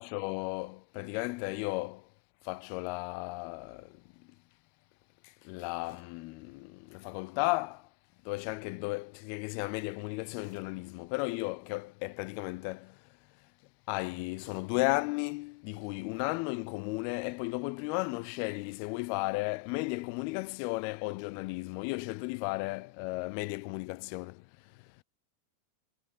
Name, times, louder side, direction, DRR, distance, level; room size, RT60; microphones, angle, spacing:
voice 1, 0.0-2.1 2.4-4.4 5.2-7.9 8.3-13.2 13.9-25.0, left 24 dB, 85° left, 2.5 m, -35 dB
sound 1, 5.8-6.3 7.9-8.3 10.4-10.9 11.5-11.7 14.3-14.8 16.1-16.6 18.6-19.1, left 4 dB, 50° left, 7.2 m, -62 dB
omnidirectional pair, 4.4 m